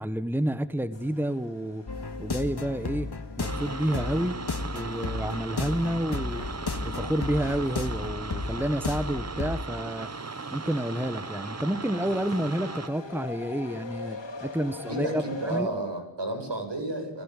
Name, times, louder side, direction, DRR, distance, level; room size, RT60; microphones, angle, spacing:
voice 1, 0.0-1.8 2.2-3.1 3.4-4.4 4.7-6.4 6.8-10.1 10.5-15.7, right 1 dB, 5° right, 12 dB, 1.3 m, -29 dB
sound 1, 0.9-15.6, left 4 dB, 80° left, 3.3 m, -44 dB
sound 2, 1.9-9.7, left 3 dB, 60° left, 2.3 m, -34 dB
sound 3, 3.4-12.9, right 4 dB, 35° right, 0.9 m, -38 dB
voice 2, 14.9-17.2, right 2 dB, 70° right, 4 dB, 7.9 m, -32 dB
29.5 x 16.5 x 10.0 m, 0.80 s
wide cardioid pair, 50°, 43 cm